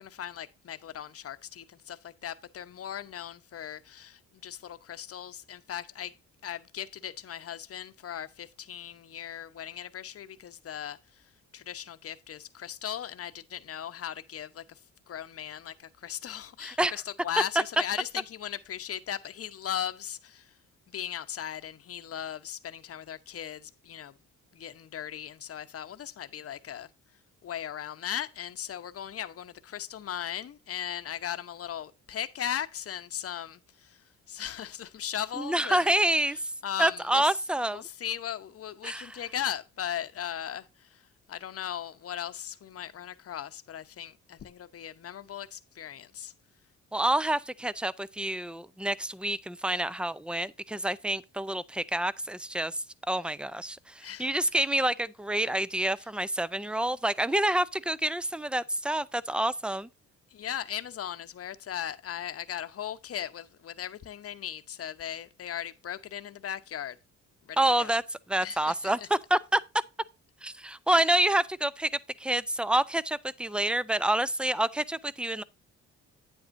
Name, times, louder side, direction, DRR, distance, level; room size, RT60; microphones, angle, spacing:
voice 1, 0.0-6.2 6.4-11.2 11.5-14.8 15.1-20.5 20.9-24.1 24.5-26.9 27.4-35.9 36.6-37.3 37.7-41.0 41.3-46.3 54.0-54.3 60.3-67.0 67.5-67.9 68.4-69.1 70.9-71.0, left 10 dB, 50° left, 0.9 m, -38 dB
voice 2, 16.6-16.9 35.4-36.4 36.8-37.9 38.8-39.1 46.9-59.9 67.6-68.0 68.3-69.6 70.4-71.9 72.2-75.4, right 1 dB, 5° right, 0.5 m, -28 dB
9.4 x 8.0 x 2.6 m
cardioid pair, 90°, 30 cm